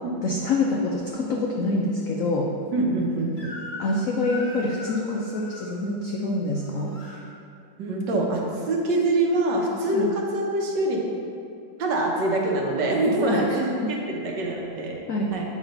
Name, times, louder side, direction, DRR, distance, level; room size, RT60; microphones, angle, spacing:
voice 1, 0.2-2.5 3.8-7.0 9.9-10.1 13.2-13.4 15.1-15.3, left 2 dB, 90° left, -2 dB, 0.7 m, -26 dB
voice 2, 2.7-3.5 7.8-11.0 11.8-15.0 15.3-15.4, right 2 dB, 70° right, -1 dB, 1.4 m, -24 dB
Crying sobbing / Screech, 3.4-3.9 4.2-5.7 6.5-7.2, left 2 dB, 20° right, 1.5 m, -39 dB
7.5 x 3.1 x 5.2 m, 2.5 s
omnidirectional pair, 2.1 m